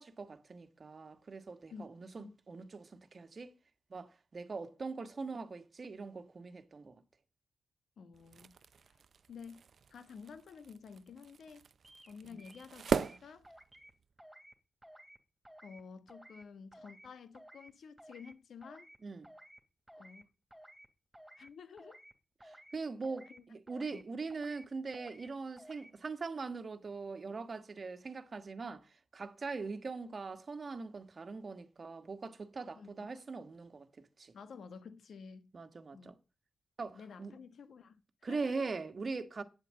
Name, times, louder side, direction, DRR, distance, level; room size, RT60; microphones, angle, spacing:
voice 1, 0.0-3.5 3.9-7.0 12.2-12.4 19.0-19.3 22.4-34.3 35.5-36.1 36.8-37.4 38.2-39.4, right 4 dB, 45° right, 1.5 m, -42 dB
voice 2, 1.7-2.3 8.0-8.6 9.3-9.6 9.9-11.6 12.1-13.5 15.6-18.9 19.9-20.3 21.4-22.0 23.3-23.4 23.9-24.0 32.8-33.1 34.3-35.5 35.9-36.1 36.9-38.7, left 5 dB, 70° left, 1.3 m, -51 dB
sound 1, 8.1-14.1, right 6 dB, 65° right, 0.6 m, -40 dB
sound 2, 11.8-12.1 12.4-13.2 13.4-13.9 14.2-14.5 14.8-15.2 15.4-15.8 16.1-16.4 16.7-17.1 17.3-17.7 18.0-18.3 18.6-19.0 19.2-19.6 19.9-20.2 20.5-20.9 21.1-21.5 21.8-22.1 22.4-22.8 23.0-23.4 23.7-24.0 24.3-24.7 24.9-25.3 25.6-25.9, right 1 dB, 5° right, 2.7 m, -56 dB
9.4 x 7.6 x 7.6 m
cardioid pair, 60°, 0 cm